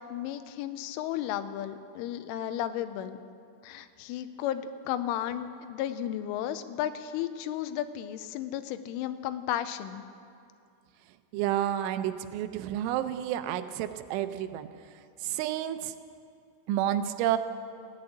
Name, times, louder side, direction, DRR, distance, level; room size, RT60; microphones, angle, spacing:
voice 1, 0.1-3.2 3.6-10.0, left 11 dB, 85° left, 11 dB, 3.1 m, -34 dB
voice 2, 11.3-14.7 15.2-15.9 16.7-17.4, right 12 dB, 85° right, 10 dB, 3.0 m, -30 dB
15.0 x 10.5 x 8.6 m, 2.4 s
omnidirectional pair, 5.6 m